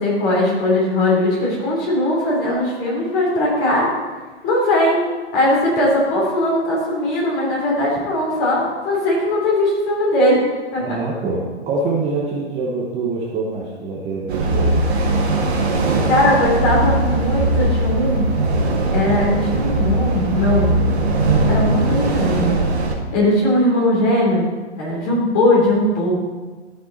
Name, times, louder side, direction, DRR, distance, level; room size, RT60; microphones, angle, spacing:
voice 1, 0.0-3.9 4.4-5.0 5.3-10.4 10.7-11.0 16.0-18.3 18.9-20.8 21.5-22.6 23.1-26.2, left 1 dB, 30° left, -3 dB, 3.2 m, -19 dB
voice 2, 10.8-14.8, right 3 dB, 20° right, -3 dB, 1.0 m, -25 dB
sound 1, 14.3-22.9, right 2 dB, 70° right, 2.0 m, -19 dB
13.5 x 5.5 x 4.0 m, 1.3 s
hypercardioid pair, 135°, 34 cm